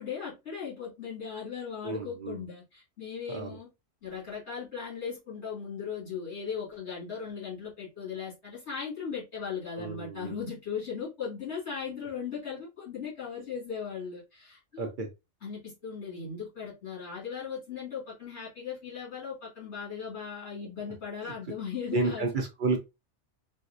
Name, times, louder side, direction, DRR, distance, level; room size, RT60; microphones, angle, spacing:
voice 1, 0.0-3.7 4.0-14.9 15.4-22.3, left 6 dB, 65° left, 2.3 m, -38 dB
voice 2, 1.8-2.4 3.3-3.6 9.8-10.4 14.8-15.1 21.9-22.8, right 3 dB, 55° right, 0.6 m, -31 dB
4.2 x 2.0 x 2.4 m
omnidirectional pair, 1.2 m